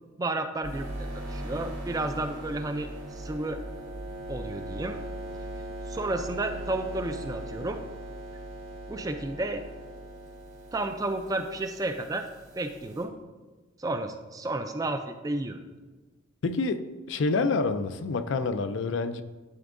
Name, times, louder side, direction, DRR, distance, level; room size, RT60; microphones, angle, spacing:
voice 1, 0.2-3.6 4.3-5.0 5.9-7.8 8.9-9.6 10.7-12.3 12.6-13.1 13.8-15.6, right 2 dB, 15° right, 7 dB, 0.3 m, -32 dB
sound 1, 0.6-13.0, right 1 dB, 75° right, 2.1 m, -39 dB
voice 2, 16.4-19.2, left 3 dB, 65° left, 10 dB, 0.4 m, -28 dB
11.0 x 4.4 x 2.5 m, 1.3 s
head